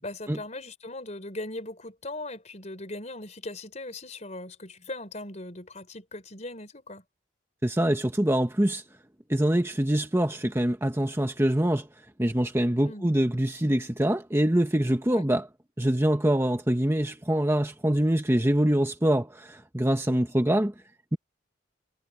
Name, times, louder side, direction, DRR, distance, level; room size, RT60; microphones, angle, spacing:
voice 1, 0.0-7.0 12.8-13.1 15.1-15.3, left 2 dB, 35° left, 4.4 m, -39 dB
voice 2, 7.6-8.8 9.3-11.9 12.2-15.5 15.8-20.7, right 1 dB, 15° right, 1.1 m, -24 dB
head